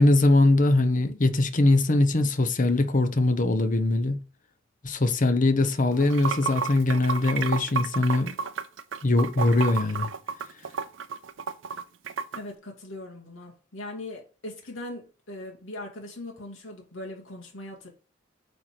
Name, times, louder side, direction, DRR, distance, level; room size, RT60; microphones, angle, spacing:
voice 1, 0.0-4.2 4.8-8.4 9.0-10.1, left 2 dB, 45° left, 1.0 m, -22 dB
Water / Sink (filling or washing), 5.9-12.4, right 5 dB, 75° right, 0.6 m, -32 dB
voice 2, 12.3-17.9, left 1 dB, 85° left, 2.7 m, -40 dB
8.2 x 4.5 x 4.9 m
head